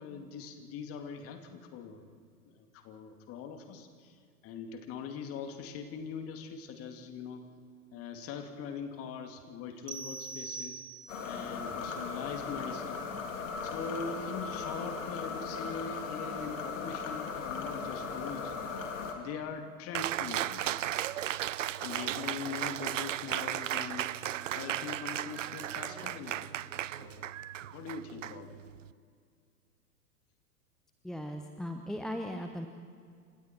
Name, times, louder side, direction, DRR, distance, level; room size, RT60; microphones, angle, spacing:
voice 1, 0.0-2.0 2.5-7.4 7.9-10.8 11.2-13.1 13.6-18.5 19.1-20.7 21.8-24.1 24.5-26.5 26.8-27.3 27.7-28.6, left 6 dB, 30° left, 5 dB, 2.5 m, -42 dB
sound 1, 9.9-11.4, right 4 dB, 75° right, 1.7 m, -42 dB
sound 2, 11.1-19.1, left 5 dB, 55° left, 3.6 m, -38 dB
Cheering, 19.9-28.9, right 12 dB, 55° right, 0.7 m, -35 dB
voice 2, 31.0-32.7, equal, ahead, 5 dB, 0.8 m, -38 dB
29.0 x 26.5 x 4.5 m, 2.2 s
figure-of-eight pair, 105°, 47 cm